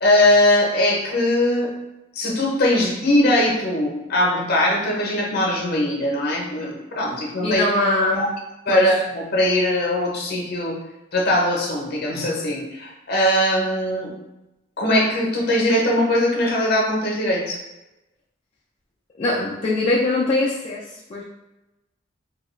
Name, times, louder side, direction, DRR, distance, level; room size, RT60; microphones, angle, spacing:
voice 1, 0.0-1.7 2.1-7.7 8.1-8.3 8.7-10.8 11.1-14.1 14.8-17.6, left 1 dB, 55° left, -1 dB, 0.7 m, -20 dB
voice 2, 7.4-8.3 8.7-9.0 19.2-21.2, left 2 dB, 30° left, -6 dB, 0.3 m, -22 dB
2.8 x 2.3 x 3.1 m, 0.99 s
head